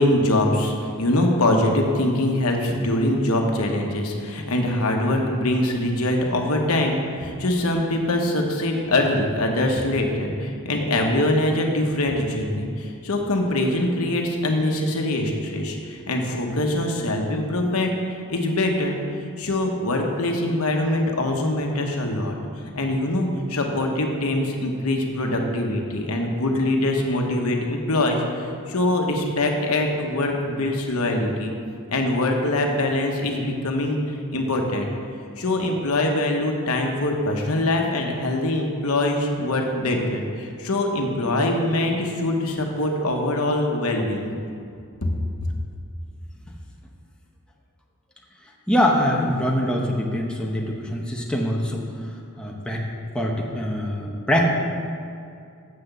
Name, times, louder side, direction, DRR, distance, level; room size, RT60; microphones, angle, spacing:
voice 1, 0.0-22.4 22.7-31.5 31.9-34.9 35.4-44.3, left 1 dB, 75° left, 2 dB, 1.1 m, -23 dB
voice 2, 48.7-51.8 52.4-52.8 53.1-54.5, equal, 5° left, -2 dB, 0.9 m, -23 dB
7.6 x 6.0 x 6.8 m, 2.4 s
head